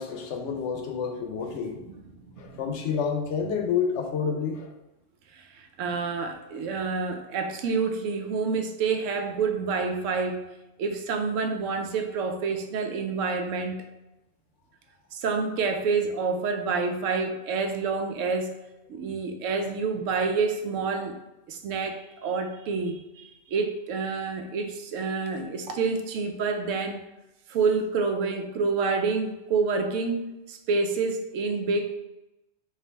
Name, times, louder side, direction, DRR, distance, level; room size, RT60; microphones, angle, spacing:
voice 1, 0.0-1.8 2.4-4.7, left 6 dB, 70° left, 3 dB, 0.9 m, -29 dB
voice 2, 5.3-10.4 10.8-13.8 15.1-18.6 18.9-21.2 21.5-27.0 27.5-32.0, right 4 dB, 80° right, 5 dB, 0.9 m, -28 dB
4.5 x 2.4 x 3.3 m, 0.97 s
omnidirectional pair, 1.3 m